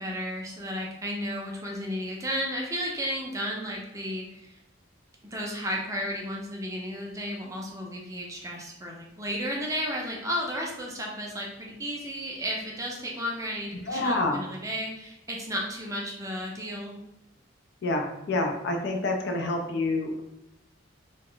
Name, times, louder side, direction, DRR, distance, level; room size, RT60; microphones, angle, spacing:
voice 1, 0.0-4.6 5.3-16.9, equal, 15° right, -1 dB, 0.4 m, -33 dB
voice 2, 13.9-14.4 17.8-20.2, left 2 dB, 60° left, 3 dB, 0.4 m, -27 dB
2.3 x 2.0 x 3.7 m, 0.83 s
head